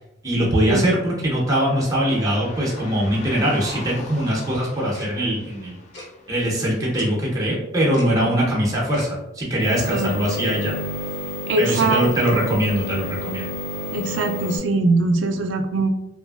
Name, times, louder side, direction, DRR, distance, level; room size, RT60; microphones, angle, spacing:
voice 1, 0.2-5.8 6.3-10.7 11.6-13.5, equal, 20° right, -4 dB, 0.6 m, -22 dB
sound 1, 1.3-6.5, left 2 dB, 40° left, 0.4 m, -42 dB
Tick-tock, 4.9-5.1 5.9-6.1 6.9-7.1 7.9-8.1 8.9-9.1, left 1 dB, 60° left, 0.9 m, -38 dB
voice 2, 8.2-8.5 9.9-10.3 11.5-12.4 13.9-15.9, right 3 dB, 70° right, 7 dB, 0.4 m, -22 dB
sound 2, 9.6-14.6, left 1 dB, 80° left, 1.3 m, -30 dB
2.8 x 2.4 x 2.3 m, 0.91 s
head